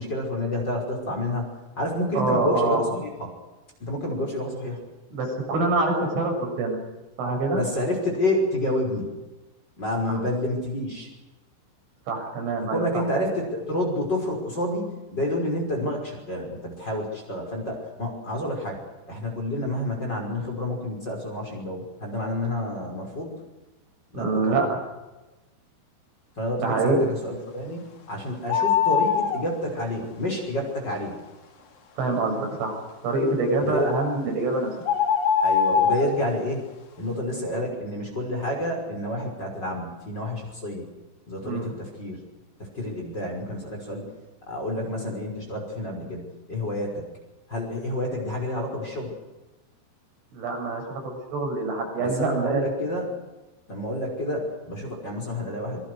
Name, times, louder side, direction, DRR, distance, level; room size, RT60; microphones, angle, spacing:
voice 1, 0.0-3.3 3.8-4.8 7.5-9.1 9.8-11.1 12.6-18.8 19.1-23.3 24.1-24.6 26.4-27.0 27.2-31.1 33.6-33.9 35.4-36.7 37.0-40.9 41.3-42.2 42.6-44.1 44.5-47.1 47.5-49.1 52.0-53.2 53.7-55.8, left 1 dB, 20° left, 0 dB, 5.8 m, -29 dB
voice 2, 2.2-2.8 5.1-6.8 7.2-7.6 12.1-13.0 24.1-24.8 26.6-27.0 32.0-32.7 33.0-34.7 41.4-41.7 50.3-52.7, right 3 dB, 75° right, 1 dB, 9.2 m, -25 dB
sound 1, 28.5-29.4 34.0-34.2 34.8-36.1, left 7 dB, 50° left, 2.8 m, -22 dB
26.0 x 22.5 x 6.4 m, 1.1 s
omnidirectional pair, 5.6 m